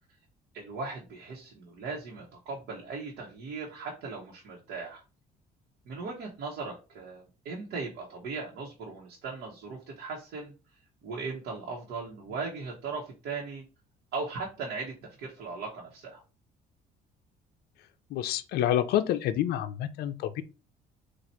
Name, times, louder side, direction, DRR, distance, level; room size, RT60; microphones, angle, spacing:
voice 1, 0.5-5.0 5.9-10.5 11.0-13.6 14.1-16.2, right 4 dB, 75° right, 1.2 m, -38 dB
voice 2, 18.1-20.4, left 11 dB, 70° left, 0.5 m, -28 dB
4.2 x 2.5 x 4.4 m
cardioid pair, 110°, 17 cm